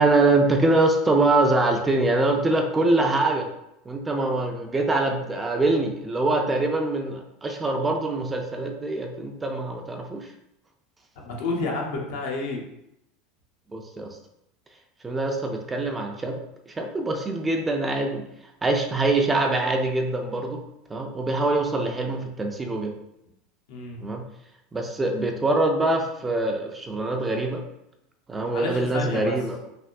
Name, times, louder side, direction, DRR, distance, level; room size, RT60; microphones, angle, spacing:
voice 1, 0.0-3.5 3.9-10.3 13.7-14.1 15.0-16.4 16.8-18.2 18.6-20.6 20.9-22.9 24.0-24.2 24.7-27.6 28.3-29.6, right 2 dB, 15° right, 3 dB, 0.4 m, -24 dB
voice 2, 11.2-12.6 23.7-24.0 28.5-29.3, left 3 dB, 75° left, -1 dB, 0.8 m, -30 dB
3.3 x 2.5 x 2.5 m, 0.83 s
supercardioid pair, 110°, 0 cm